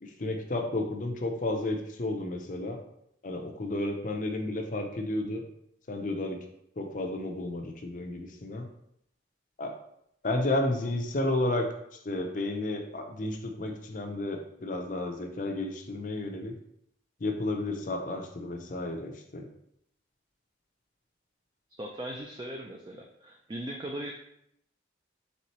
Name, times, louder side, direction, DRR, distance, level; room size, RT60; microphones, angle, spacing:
voice 1, 0.0-2.8 3.2-5.4 5.9-6.4 6.8-8.7 9.6-9.8 10.2-11.7 12.0-16.5 17.2-19.4, left 2 dB, 45° left, 4 dB, 0.6 m, -32 dB
voice 2, 21.8-24.1, right 1 dB, 25° right, 0 dB, 0.3 m, -38 dB
4.2 x 3.7 x 3.0 m, 0.74 s
head